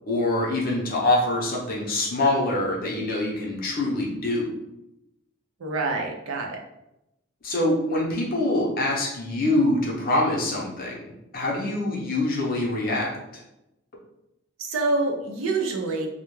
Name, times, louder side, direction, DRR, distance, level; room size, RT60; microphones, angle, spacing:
voice 1, 0.1-4.5 7.4-13.2, left 2 dB, 45° left, -2 dB, 0.6 m, -25 dB
voice 2, 5.6-6.6 14.6-16.1, right 3 dB, 80° right, 1 dB, 0.5 m, -26 dB
2.2 x 2.0 x 3.0 m, 0.87 s
head